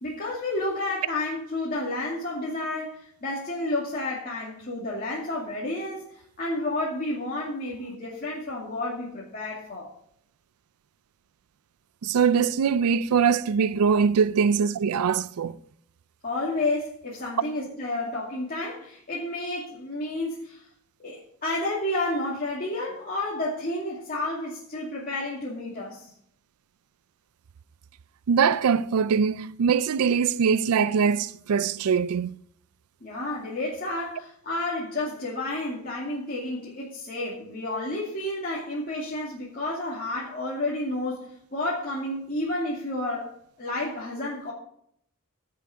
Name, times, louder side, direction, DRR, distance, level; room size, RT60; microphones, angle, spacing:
voice 1, 0.0-6.0 6.4-9.9 16.2-20.6 21.0-26.1 33.0-43.3 43.6-44.5, left 2 dB, 40° left, 2.4 m, -31 dB
voice 2, 12.0-15.6 28.3-32.4, right 6 dB, 80° right, 0.4 m, -22 dB
16.5 x 5.8 x 4.9 m
head